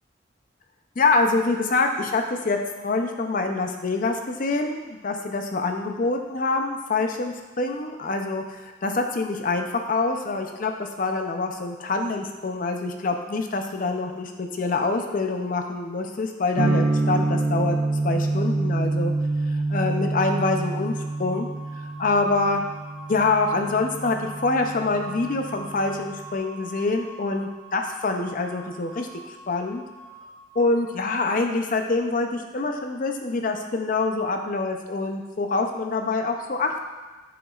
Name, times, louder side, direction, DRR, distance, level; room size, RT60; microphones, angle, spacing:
voice 1, 1.0-17.8 18.0-19.1 19.5-20.9 21.2-21.5 22.0-22.6 23.1-29.1 29.5-29.8 30.6-36.8, left 3 dB, 45° left, 4 dB, 0.5 m, -25 dB
sound 1, 16.6-26.3, right 2 dB, 65° right, 0.6 m, -27 dB
sound 2, 20.9-31.0, right 2 dB, 85° left, 1.4 m, -44 dB
7.8 x 5.1 x 2.4 m, 1.2 s
head